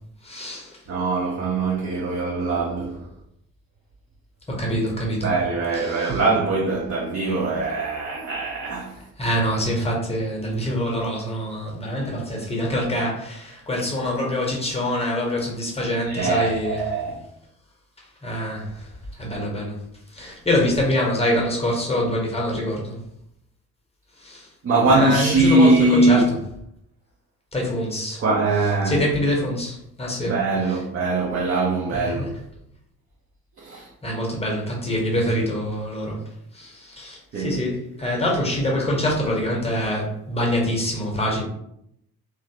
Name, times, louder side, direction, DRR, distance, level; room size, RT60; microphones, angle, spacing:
voice 1, 0.2-0.7 4.6-5.3 5.7-6.2 9.2-16.8 18.2-18.7 19.2-19.8 20.1-23.0 24.2-24.4 24.9-26.2 27.5-28.2 28.8-30.3 30.7-30.8 31.9-32.3 34.0-36.2 36.5-41.4, left 1 dB, 15° left, 1.1 m, -25 dB
voice 2, 0.9-3.0 5.2-9.0 16.0-17.2 20.2-20.3 24.6-26.3 28.2-29.0 30.3-32.3 33.6-33.9 37.3-37.6, right 2 dB, 30° right, 0.7 m, -22 dB
2.9 x 2.5 x 2.8 m
figure-of-eight pair, 45°, 43 cm